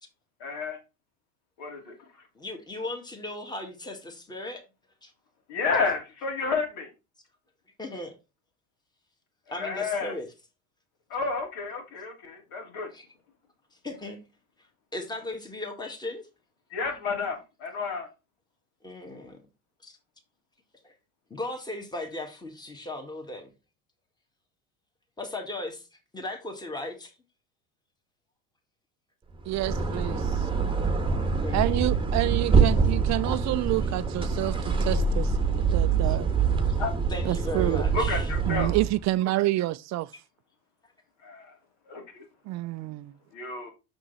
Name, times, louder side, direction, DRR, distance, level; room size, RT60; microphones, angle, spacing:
voice 1, 0.4-0.8 1.6-1.9 5.5-6.9 9.5-10.1 11.1-12.9 16.7-18.1 36.8-36.9 37.9-38.7 41.2-41.5 41.9-42.2 43.3-43.7, left 4 dB, 65° left, 3.0 m, -31 dB
voice 2, 2.4-4.6 5.0-5.1 7.8-8.1 9.5-10.3 12.9-13.1 13.8-14.2 14.9-16.3 18.8-19.4 19.8-20.0 20.8-20.9 21.3-23.5 25.2-25.9 26.1-27.2 30.7-30.8 31.4-31.8 36.0-36.2 37.1-38.3, left 2 dB, 10° left, 2.0 m, -37 dB
sound 1, 29.4-39.0, right 5 dB, 10° right, 1.3 m, -25 dB
voice 3, 29.5-30.5 31.5-36.3 37.2-37.8 38.5-40.1 42.5-43.1, right 17 dB, 40° right, 0.5 m, -28 dB
6.1 x 5.9 x 4.1 m
hypercardioid pair, 75°, 41 cm